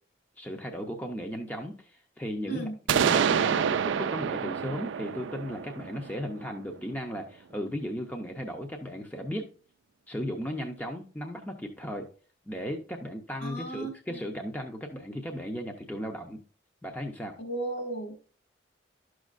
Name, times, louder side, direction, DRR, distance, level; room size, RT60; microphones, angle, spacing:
voice 1, 0.4-9.5 10.1-12.1 12.5-16.4 16.8-17.4, equal, 10° left, 3 dB, 0.6 m, -36 dB
sound 1, 2.9-6.7, right 7 dB, 75° right, 0.4 m, -28 dB
voice 2, 13.4-14.2 17.4-18.2, right 2 dB, 60° left, 3 dB, 2.3 m, -35 dB
11.5 x 6.2 x 2.4 m, 0.41 s
head